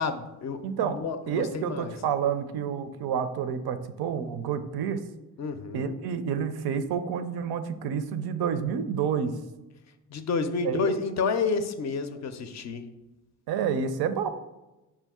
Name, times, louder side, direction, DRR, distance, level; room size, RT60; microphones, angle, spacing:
voice 1, 0.0-1.9 5.4-5.9 10.1-12.8, left 4 dB, 45° left, 9 dB, 0.4 m, -30 dB
voice 2, 0.6-1.0 1.3-5.0 5.7-9.4 10.6-10.9 13.5-14.3, right 7 dB, 65° right, 10 dB, 0.5 m, -29 dB
4.5 x 2.4 x 3.6 m, 1.0 s
supercardioid pair, 65°, 41 cm